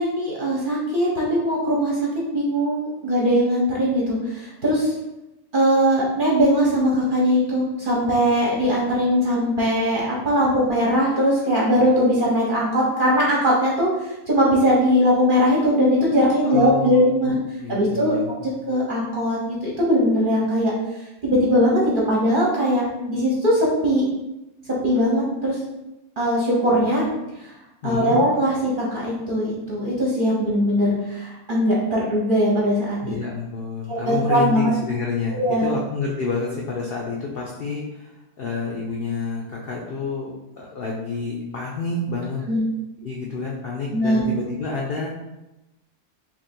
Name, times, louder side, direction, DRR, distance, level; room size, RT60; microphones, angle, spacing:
voice 1, 0.0-2.1 2.3-4.9 5.5-17.3 17.7-18.1 18.7-20.7 21.0-24.0 24.7-25.6 26.2-27.0 27.4-27.5 27.8-33.2 33.9-34.6 35.3-35.7 42.5-42.7 43.9-44.3, equal, 45° right, -5 dB, 0.7 m, -20 dB
voice 2, 16.5-18.5 27.8-28.2 33.0-42.4 43.0-45.1, left 4 dB, 65° left, -2 dB, 0.5 m, -29 dB
2.9 x 2.6 x 4.3 m, 0.97 s
omnidirectional pair, 1.6 m